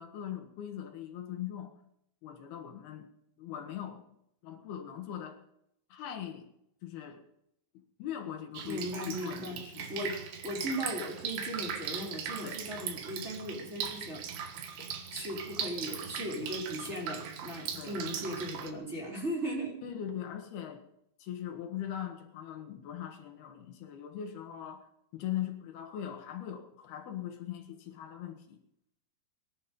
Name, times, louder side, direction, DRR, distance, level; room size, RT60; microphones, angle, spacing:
voice 1, 0.0-1.7 2.2-3.1 3.4-4.0 4.4-5.4 5.9-6.5 6.8-7.2 7.7-10.1 12.4-12.7 17.7-18.1 19.8-20.8 21.2-24.9 25.1-28.6, left 10 dB, 75° left, 5 dB, 3.4 m, -40 dB
Drip, 8.5-18.7, right 7 dB, 85° right, 3.7 m, -39 dB
voice 2, 8.6-9.6 9.9-14.2 15.1-19.8, equal, 15° right, -3 dB, 3.9 m, -37 dB
22.0 x 11.0 x 5.3 m, 0.77 s
omnidirectional pair, 4.6 m